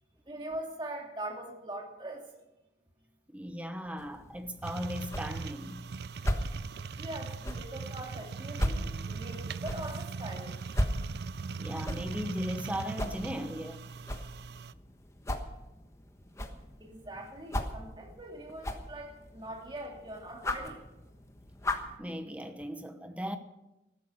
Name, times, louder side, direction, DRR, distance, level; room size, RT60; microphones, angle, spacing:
voice 1, 0.3-2.3 7.0-10.8 16.8-20.8, right 1 dB, 25° right, 2.6 m, -42 dB
voice 2, 3.3-5.9 11.6-13.8 22.0-23.4, equal, 5° right, 0.9 m, -37 dB
sound 1, 4.0-22.0, left 1 dB, 15° left, 1.2 m, -38 dB
sound 2, 4.6-14.7, right 5 dB, 60° right, 0.4 m, -40 dB
14.5 x 12.0 x 6.5 m
head